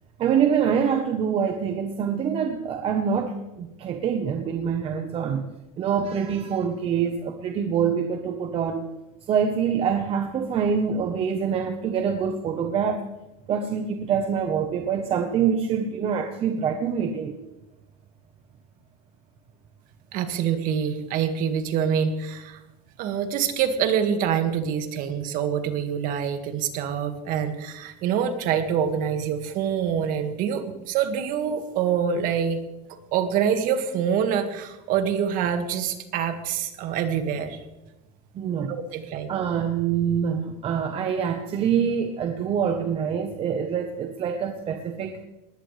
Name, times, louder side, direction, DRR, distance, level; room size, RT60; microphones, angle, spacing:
voice 1, 0.2-5.5 5.8-8.9 9.3-13.0 13.5-17.4 38.3-38.8 39.3-45.2, right 7 dB, 30° right, 5 dB, 1.0 m, -25 dB
voice 2, 20.1-22.6 23.0-32.6 33.1-37.6 38.7-39.3, right 8 dB, 45° right, 7 dB, 1.9 m, -25 dB
20.5 x 19.5 x 3.3 m, 0.98 s
supercardioid pair, 150°, 19 cm